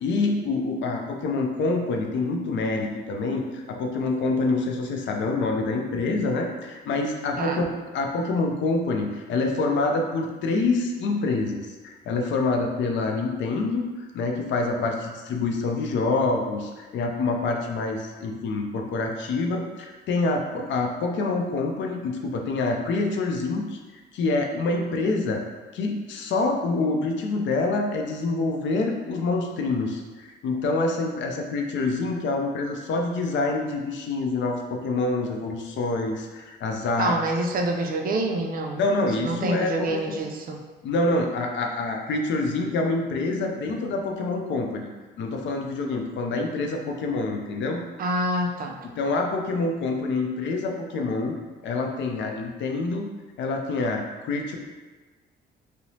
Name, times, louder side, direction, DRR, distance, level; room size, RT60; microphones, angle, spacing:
voice 1, 0.0-23.8 24.1-25.4 25.7-37.2 38.8-40.0 40.8-44.9 45.2-47.8 49.0-51.4 51.6-53.1 53.4-54.6, left 3 dB, 70° left, 2 dB, 0.4 m, -26 dB
voice 2, 37.0-38.8 39.2-40.6 48.0-48.8, right 2 dB, 45° right, 2 dB, 0.4 m, -26 dB
2.9 x 2.0 x 2.7 m, 1.3 s
cardioid pair, 90°, 20 cm